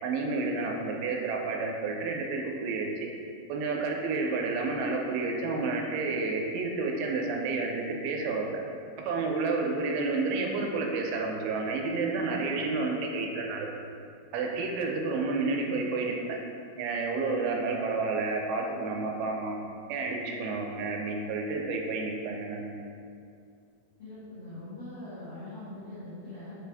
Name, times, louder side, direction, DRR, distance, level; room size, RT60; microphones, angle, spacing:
voice 1, 0.0-2.9 3.5-8.4 9.1-13.9 14.3-16.2 16.8-19.6 19.9-22.7, right 3 dB, 85° right, 1 dB, 2.4 m, -30 dB
voice 2, 15.3-15.8 24.0-26.6, left 2 dB, 50° left, -14 dB, 1.8 m, -43 dB
5.7 x 2.5 x 3.3 m, 2.4 s
omnidirectional pair, 4.4 m